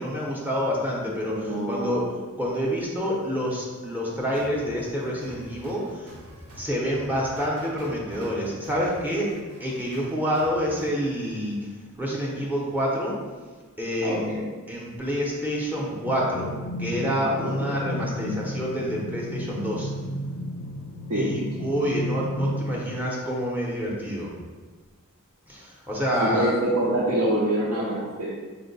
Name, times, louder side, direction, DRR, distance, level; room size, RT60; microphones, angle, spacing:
voice 1, 0.0-2.0 2.4-6.1 6.5-9.3 9.6-11.6 12.0-13.2 13.8-19.9 21.1-24.3 25.5-26.5, equal, 10° right, -4 dB, 0.6 m, -28 dB
voice 2, 1.4-2.1 14.0-14.4 17.4-17.7 21.1-21.3 26.2-28.3, right 1 dB, 70° right, -6 dB, 0.6 m, -26 dB
sound 1, 4.3-11.0, equal, 85° right, 0.9 m, -46 dB
sound 2, 16.1-22.8, equal, 60° left, 0.4 m, -33 dB
4.4 x 2.1 x 3.9 m, 1.4 s
head